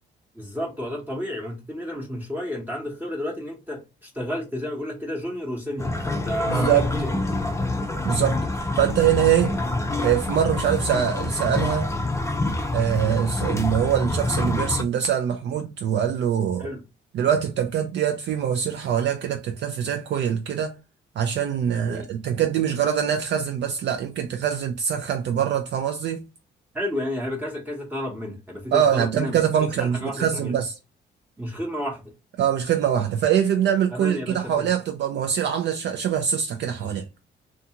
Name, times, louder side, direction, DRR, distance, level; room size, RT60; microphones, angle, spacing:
voice 1, 0.3-7.1 16.6-16.8 21.9-22.1 26.7-30.5 31.4-32.1 33.9-34.7, left 1 dB, 10° right, 0.8 m, -31 dB
sound 1, 5.8-14.8, left 2 dB, 15° left, 0.4 m, -26 dB
voice 2, 6.5-6.9 8.0-9.6 10.0-11.9 12.7-16.7 17.1-20.8 21.2-26.2 28.7-30.7 32.4-37.0, right 9 dB, 60° right, 0.4 m, -23 dB
2.6 x 2.3 x 2.8 m
cardioid pair, 90°, 20 cm